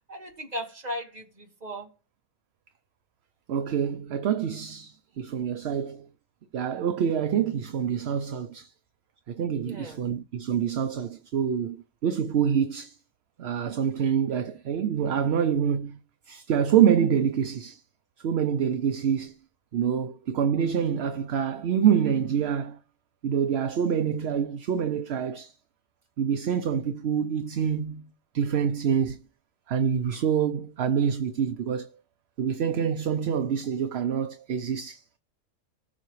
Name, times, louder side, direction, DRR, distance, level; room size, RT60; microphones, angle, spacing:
voice 1, 0.1-2.0 9.6-10.0, equal, 35° right, 1.8 m, -37 dB
voice 2, 3.5-6.1 6.5-8.7 9.3-13.0 13.4-16.0 16.3-17.8 18.2-19.4 19.7-22.8 23.2-25.5 26.2-29.2 29.7-31.9 32.4-35.0, right 8 dB, 60° right, 0.8 m, -26 dB
19.5 x 6.8 x 3.2 m
omnidirectional pair, 1.3 m